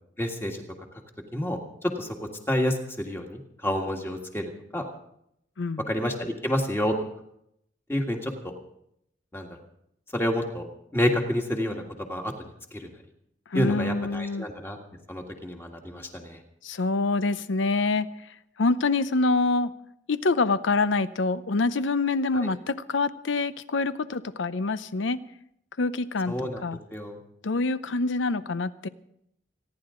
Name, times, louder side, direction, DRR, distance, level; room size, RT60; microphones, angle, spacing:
voice 1, 0.2-0.6 1.3-2.2 2.5-4.9 5.9-6.9 7.9-8.5 9.3-9.5 10.1-10.7 10.9-11.8 12.1-12.3 12.7-12.9 13.5-14.8 15.1-16.4 22.3-22.5 26.3-26.6 26.9-27.2, left 1 dB, 15° left, 2 dB, 1.7 m, -29 dB
voice 2, 5.6-5.9 13.5-14.5 16.6-18.1 18.6-19.7 20.1-25.2 25.8-26.8 27.4-28.9, left 3 dB, 90° left, 15 dB, 0.7 m, -26 dB
29.5 x 10.5 x 3.8 m, 0.76 s
head